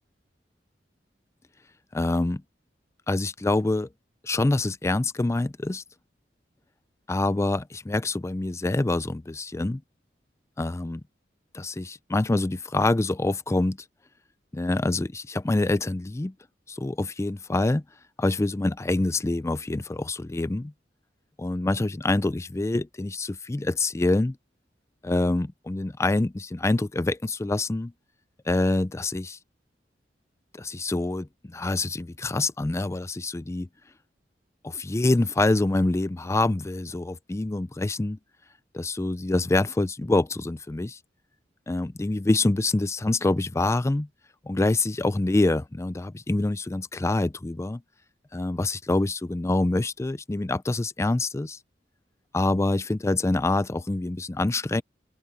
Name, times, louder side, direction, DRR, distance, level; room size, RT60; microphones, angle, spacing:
voice 1, 1.9-2.4 3.1-3.9 4.2-5.8 7.1-9.8 10.6-11.0 11.5-13.8 14.5-16.3 16.7-17.8 18.2-20.7 21.4-24.4 25.0-27.9 28.5-29.4 30.5-33.7 34.6-38.2 38.7-41.0 41.7-44.1 44.5-47.8 48.3-51.6 52.3-54.8, left 2 dB, 15° left, 0.4 m, -26 dB
open air
head